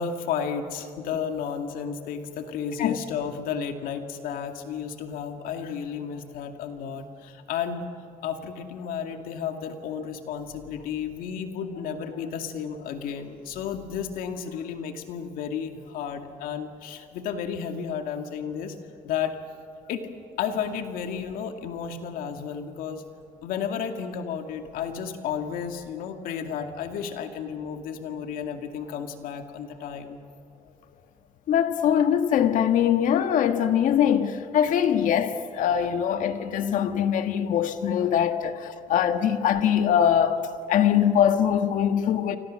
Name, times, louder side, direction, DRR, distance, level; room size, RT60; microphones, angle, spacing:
voice 1, 0.0-7.9 8.2-18.8 19.0-19.4 19.9-20.1 20.4-23.0 23.4-30.2 30.6-31.0 34.7-34.8 38.0-38.4, left 7 dB, 85° left, 2.2 m, -32 dB
voice 2, 31.5-40.4 40.7-42.4, left 9 dB, 65° left, 1.6 m, -22 dB
30.0 x 25.0 x 6.4 m
cardioid pair, 135°, 14 cm